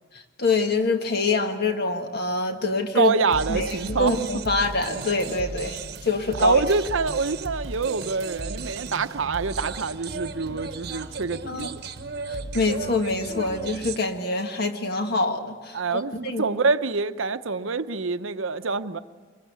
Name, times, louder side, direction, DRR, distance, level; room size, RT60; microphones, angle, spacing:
voice 1, 0.4-3.1 3.5-6.6 11.5-11.7 12.3-16.5, left 3 dB, 50° left, 1.7 m, -25 dB
voice 2, 2.9-4.2 6.4-11.8 15.7-19.0, right 4 dB, 75° right, 0.8 m, -26 dB
sound 1, 3.3-14.0, right 3 dB, 50° right, 1.1 m, -35 dB
25.0 x 21.5 x 8.4 m
head